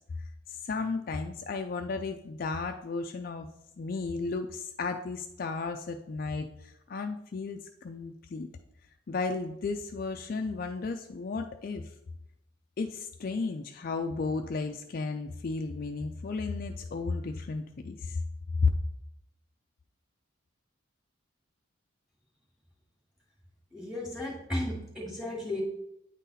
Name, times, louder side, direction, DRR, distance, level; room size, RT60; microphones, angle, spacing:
voice 1, 0.1-3.5 3.8-8.5 9.1-11.9 12.8-18.2 18.6-18.7, left 4 dB, 45° left, 5 dB, 0.4 m, -33 dB
voice 2, 23.7-25.6, left 1 dB, ahead, -4 dB, 2.0 m, -34 dB
8.9 x 3.9 x 4.1 m, 0.81 s
head